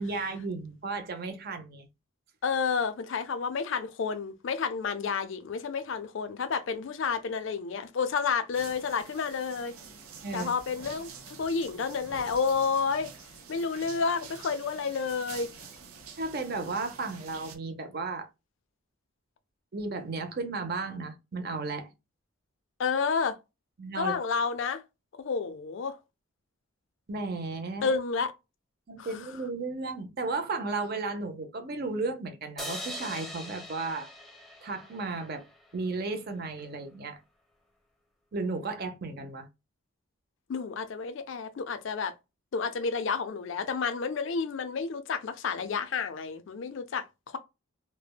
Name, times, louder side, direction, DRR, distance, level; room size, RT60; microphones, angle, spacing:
voice 1, 0.0-1.9 10.2-10.5 16.2-18.3 19.7-21.9 23.8-24.2 27.1-27.9 28.9-34.1 34.6-35.5 35.7-37.2 38.3-39.5, right 3 dB, 45° right, 0.5 m, -34 dB
voice 2, 2.4-9.7 10.3-11.1 11.4-13.1 13.5-15.5 22.8-23.4 24.0-24.8 25.2-26.0 27.8-28.3 29.0-29.2 40.5-42.1 42.5-47.4, left 5 dB, 60° left, 0.4 m, -30 dB
sound 1, 8.5-17.6, right 5 dB, 85° right, 0.7 m, -47 dB
sound 2, 32.6-35.9, equal, ahead, 0.5 m, -42 dB
3.2 x 2.1 x 2.2 m
head